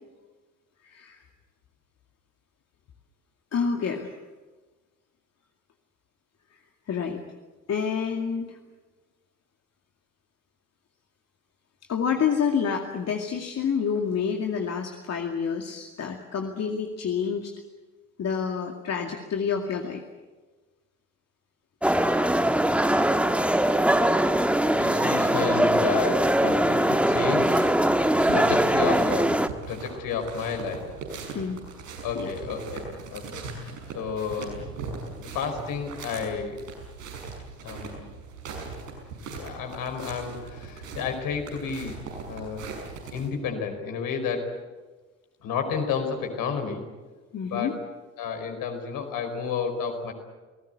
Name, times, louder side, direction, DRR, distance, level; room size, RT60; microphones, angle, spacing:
voice 1, 0.8-1.2 3.5-4.2 6.9-7.2 7.7-8.6 11.9-17.5 18.2-20.0 28.3-28.5 31.3-31.6 32.1-32.3 47.3-47.7, left 6 dB, 40° left, 3 dB, 2.3 m, -28 dB
sound 1, 21.8-29.5, right 1 dB, 5° right, 1.5 m, -22 dB
voice 2, 23.6-27.5 28.0-29.4 29.7-30.9 32.0-33.4 33.9-34.8 35.2-36.6 37.6-38.0 39.3-42.0 42.3-42.6 43.1-44.5 45.4-46.8 47.4-47.8 48.2-50.1, left 6 dB, 55° left, 5 dB, 5.0 m, -31 dB
sound 2, 26.9-43.3, right 4 dB, 80° right, 6.0 m, -40 dB
29.0 x 19.0 x 8.1 m, 1.3 s
figure-of-eight pair, 55°, 40 cm